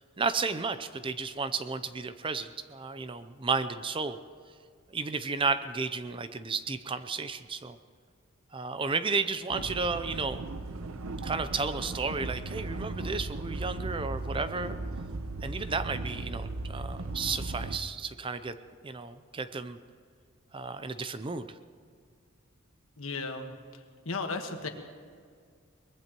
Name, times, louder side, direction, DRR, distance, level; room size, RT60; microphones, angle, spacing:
voice 1, 0.0-4.2 4.9-7.8 8.5-10.4 11.2-14.7 15.4-18.6 18.8-19.8 20.5-21.5, right 4 dB, 25° right, 11 dB, 0.5 m, -33 dB
sound 1, 9.5-17.8, right 2 dB, 90° right, 0.8 m, -37 dB
voice 2, 23.0-23.5 24.0-24.7, left 3 dB, 75° left, 5 dB, 1.5 m, -34 dB
23.0 x 20.5 x 3.0 m, 2.1 s
head